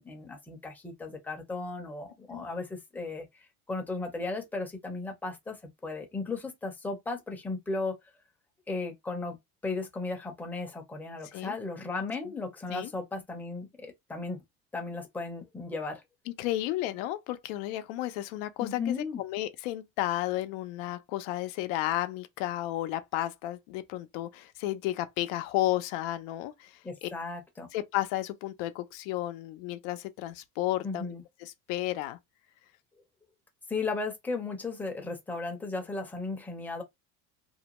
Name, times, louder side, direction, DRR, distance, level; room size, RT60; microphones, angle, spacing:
voice 1, 0.0-3.3 3.7-5.6 5.8-8.0 8.7-9.4 9.6-14.4 14.7-16.0 18.6-19.2 26.8-27.7 30.8-31.2 33.7-36.8, left 3 dB, 5° left, 0.5 m, -35 dB
voice 2, 16.4-27.1 27.7-31.2 31.4-32.2, left 15 dB, 85° left, 0.5 m, -33 dB
2.6 x 2.1 x 2.9 m
cardioid pair, 135°, 36 cm